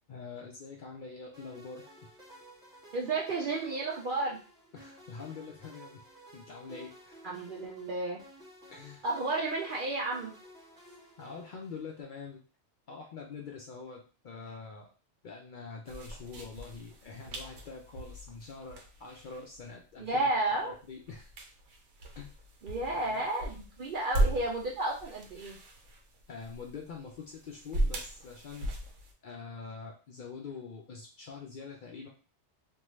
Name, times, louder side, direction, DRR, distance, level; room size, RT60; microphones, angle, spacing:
voice 1, 0.1-2.2 4.7-6.1 6.3-7.2 8.7-9.0 10.8-12.4 12.9-14.9 15.2-20.3 20.6-21.3 22.2-22.3 23.0-23.2 26.3-28.7 29.2-32.1, left 5 dB, 60° left, 0 dB, 0.5 m, -45 dB
sound 1, 1.3-12.0, right 1 dB, 5° right, 1.0 m, -54 dB
voice 2, 2.9-4.4 7.2-8.2 9.0-10.3 20.0-20.8 22.6-25.6, right 2 dB, 55° right, -2 dB, 0.6 m, -32 dB
sound 2, 15.9-29.1, right 1 dB, 80° right, 0.9 m, -37 dB
2.6 x 2.3 x 3.0 m, 0.36 s
omnidirectional pair, 1.2 m